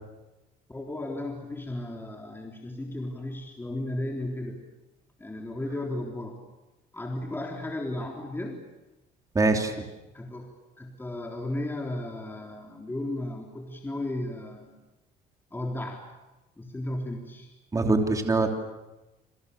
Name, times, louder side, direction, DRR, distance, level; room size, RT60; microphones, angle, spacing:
voice 1, 0.7-4.6 5.2-6.4 6.9-8.6 10.1-10.5 10.8-14.7 15.5-16.0 16.6-17.5, left 1 dB, 10° left, 0 dB, 3.7 m, -34 dB
voice 2, 9.3-9.8 17.7-18.5, right 3 dB, 20° right, 3 dB, 3.1 m, -23 dB
27.5 x 27.0 x 6.9 m, 1.0 s
cardioid pair, 110°, 17 cm